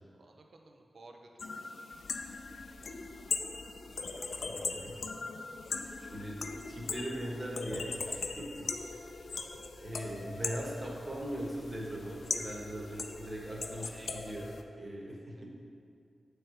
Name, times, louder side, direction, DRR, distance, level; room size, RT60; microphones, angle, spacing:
voice 1, 0.0-1.7 13.7-13.9 15.3-15.5, right 2 dB, 70° right, 2 dB, 0.6 m, -56 dB
sound 1, 1.4-14.6, left 4 dB, 75° left, 0.4 m, -40 dB
voice 2, 4.4-5.0 6.0-8.7 9.8-14.5 14.8-15.5, right 1 dB, 40° right, -3 dB, 1.3 m, -40 dB
7.4 x 3.3 x 4.5 m, 2.3 s
cardioid pair, 55°, 0 cm